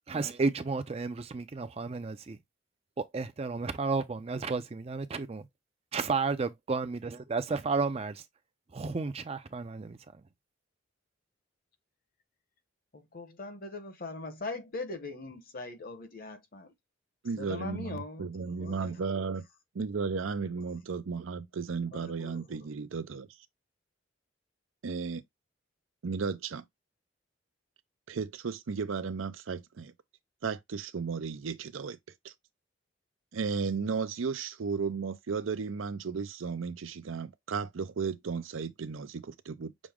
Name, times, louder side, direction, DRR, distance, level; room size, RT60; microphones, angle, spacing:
voice 1, 0.1-2.4 3.0-5.5 5.9-8.2 8.7-10.2, right 4 dB, 30° right, 0.4 m, -32 dB
voice 2, 12.9-16.7 17.4-19.0 20.5-20.7 21.9-22.7, left 3 dB, 45° left, 0.9 m, -41 dB
voice 3, 17.2-19.4 19.7-23.3 24.8-25.2 26.0-26.6 28.1-29.9 30.4-32.0 32.2-32.3 33.3-39.7, right 5 dB, 85° right, 0.5 m, -34 dB
6.2 x 2.1 x 3.5 m
head